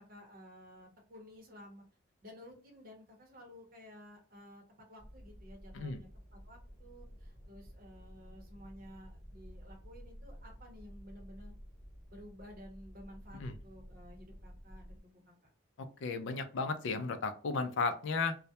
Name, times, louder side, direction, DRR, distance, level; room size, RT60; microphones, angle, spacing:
voice 1, 0.0-1.8 2.2-4.6 4.9-11.5 12.1-15.3, left 1 dB, 45° right, 2 dB, 0.7 m, -54 dB
sound 1, 5.0-15.0, equal, 20° left, 1.0 m, -52 dB
voice 2, 15.8-18.4, left 4 dB, 65° left, 8 dB, 0.4 m, -34 dB
2.2 x 2.0 x 2.7 m, 0.41 s
head